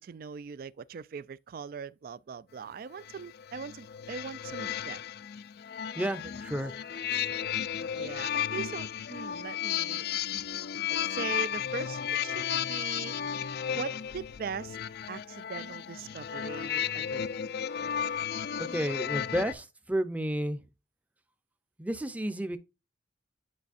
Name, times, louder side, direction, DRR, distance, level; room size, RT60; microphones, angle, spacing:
voice 1, 0.0-5.0 7.9-10.1 10.9-13.1 13.7-14.8 15.1-17.4, right 6 dB, 55° right, 0.3 m, -40 dB
sound 1, 3.0-19.5, left 9 dB, 60° left, 0.4 m, -34 dB
voice 2, 6.0-6.7 18.6-20.6 21.8-22.6, right 1 dB, 10° right, 0.6 m, -31 dB
11.0 x 4.2 x 2.5 m
head